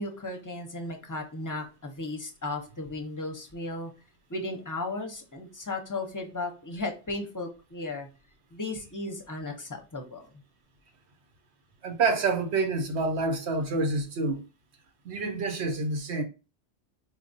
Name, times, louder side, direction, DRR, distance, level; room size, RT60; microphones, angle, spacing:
voice 1, 0.0-3.9 4.3-8.1 8.5-10.2, left 2 dB, 20° left, 0.6 m, -35 dB
voice 2, 11.8-14.4 15.0-16.2, right 3 dB, 85° right, 1.0 m, -27 dB
4.5 x 2.3 x 2.6 m
omnidirectional pair, 1.1 m